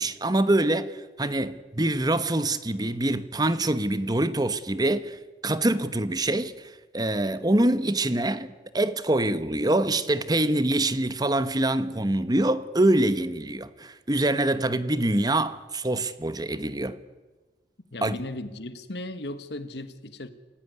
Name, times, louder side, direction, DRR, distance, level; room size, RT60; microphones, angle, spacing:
voice 1, 0.0-17.0 18.0-18.1, right 1 dB, 25° right, 1.1 m, -25 dB
voice 2, 17.9-20.3, left 1 dB, 70° left, 1.8 m, -36 dB
27.5 x 16.0 x 9.5 m
head